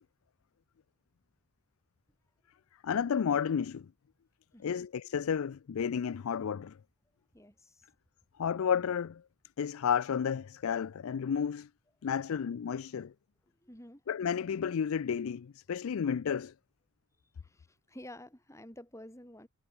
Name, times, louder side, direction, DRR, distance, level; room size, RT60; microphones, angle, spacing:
voice 1, 2.8-3.9 4.6-6.8 8.4-9.2 9.6-11.7 12.0-13.1 14.1-16.5, left 7 dB, 75° left, 0.4 m, -32 dB
voice 2, 4.5-4.8 7.3-7.9 13.6-14.0 17.4-19.5, left 1 dB, 15° left, 6.6 m, -50 dB
head